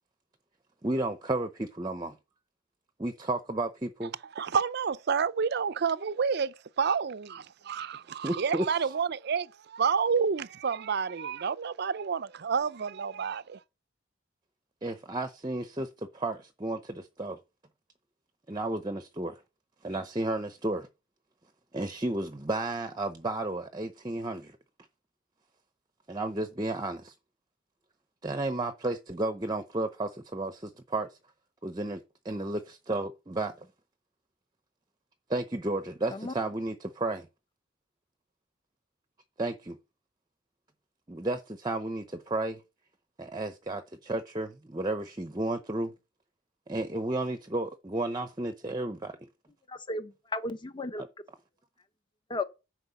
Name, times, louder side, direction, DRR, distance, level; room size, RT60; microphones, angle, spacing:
voice 1, 0.8-2.2 3.0-4.1 8.2-8.7 14.8-17.4 18.5-19.4 19.8-20.9 21.7-24.6 26.1-27.1 28.2-31.1 31.6-33.7 35.3-37.3 39.4-39.8 41.1-42.6 43.2-45.9 46.7-49.2 51.0-51.1, right 2 dB, 20° right, 0.7 m, -32 dB
voice 2, 4.4-13.6, right 6 dB, 55° right, 0.5 m, -29 dB
voice 3, 49.7-51.0 52.3-52.4, left 2 dB, 25° left, 0.9 m, -34 dB
10.0 x 4.8 x 7.0 m
head